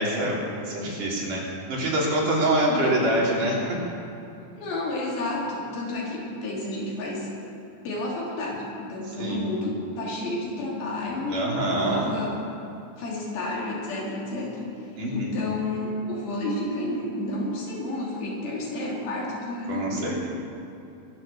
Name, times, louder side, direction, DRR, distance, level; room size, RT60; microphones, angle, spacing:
voice 1, 0.0-3.8 9.1-9.4 11.3-12.1 15.0-15.4 19.7-20.3, right 1 dB, 60° right, -4 dB, 4.4 m, -26 dB
voice 2, 2.6-3.1 4.6-7.3 7.8-12.4 13.0-20.1, left 2 dB, 80° left, -4 dB, 4.8 m, -31 dB
23.0 x 7.7 x 6.9 m, 2.8 s
omnidirectional pair, 4.2 m